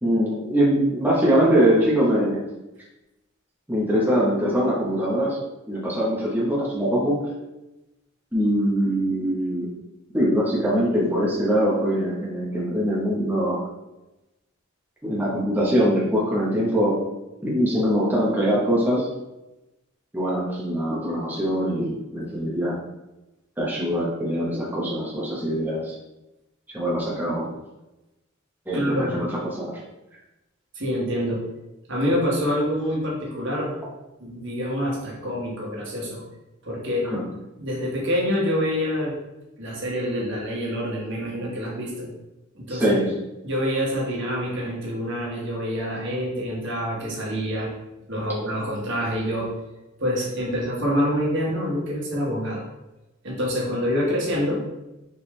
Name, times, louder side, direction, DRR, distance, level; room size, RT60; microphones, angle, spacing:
voice 1, 0.0-2.4 3.7-5.4 5.7-7.2 8.3-9.7 10.1-13.6 15.0-17.0 17.4-19.1 20.1-22.7 23.6-25.9 26.7-27.5 28.7-29.8 37.1-37.2 42.7-43.1, equal, 10° right, -6 dB, 1.0 m, -22 dB
voice 2, 28.7-29.2 30.7-31.4 31.9-33.7 34.2-36.2 36.6-37.1 37.6-39.2 39.6-42.1 42.5-42.8 43.4-47.7 48.1-49.5 50.0-52.7 53.2-54.6, equal, 65° right, -3 dB, 1.4 m, -26 dB
4.5 x 3.6 x 3.2 m, 0.98 s
head